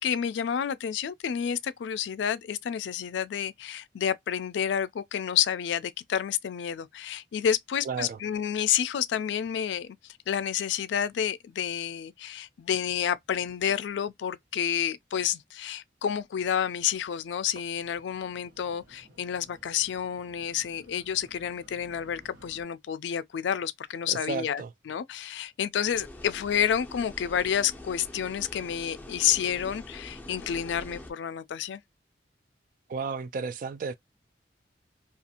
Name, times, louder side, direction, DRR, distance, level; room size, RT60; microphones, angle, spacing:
voice 1, 0.0-31.8, left 9 dB, 80° left, 0.3 m, -30 dB
voice 2, 7.8-8.2 24.1-24.7 32.9-33.9, right 5 dB, 50° right, 0.3 m, -33 dB
sound 1, 17.2-22.6, right 1 dB, 85° right, 0.9 m, -56 dB
sound 2, 25.9-31.1, left 1 dB, 10° left, 0.5 m, -45 dB
2.5 x 2.3 x 2.7 m
head